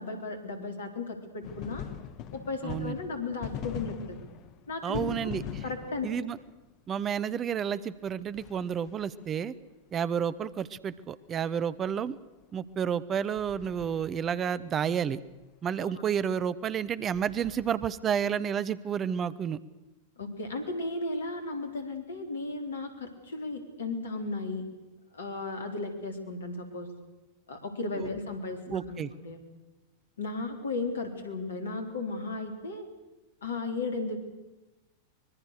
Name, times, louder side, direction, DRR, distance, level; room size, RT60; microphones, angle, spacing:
voice 1, 0.0-1.9 2.3-4.2 4.7-5.2 5.6-6.1 15.8-15.9 20.2-24.6 25.1-26.9 27.5-29.4 30.2-32.9 33.4-34.2, left 3 dB, 70° left, 6 dB, 3.9 m, -35 dB
sound 1, 1.4-6.7 8.3-9.3 13.4-14.4 17.1-18.1, left 9 dB, 40° left, 1.4 m, -42 dB
voice 2, 2.6-2.9 4.8-5.4 6.0-6.4 6.9-9.5 9.9-12.2 12.5-15.2 15.6-19.6 28.0-28.1 28.7-29.1, right 8 dB, 25° right, 18 dB, 0.9 m, -30 dB
25.0 x 22.0 x 6.7 m, 1.1 s
figure-of-eight pair, 90°, 0 cm